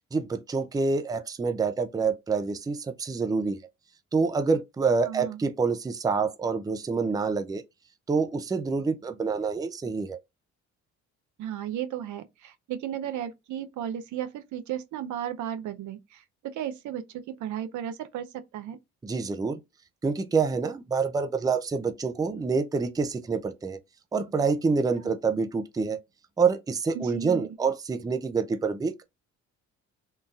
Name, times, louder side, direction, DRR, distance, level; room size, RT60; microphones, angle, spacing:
voice 1, 0.1-3.6 4.1-7.6 8.1-10.2 19.0-19.6 20.0-23.8 24.1-26.0 26.4-29.0, right 4 dB, 15° right, 0.4 m, -27 dB
voice 2, 5.0-5.4 11.4-18.8 25.0-25.1 26.9-27.5, right 10 dB, 75° right, 0.6 m, -35 dB
3.7 x 2.6 x 2.4 m
cardioid pair, 90°, 30 cm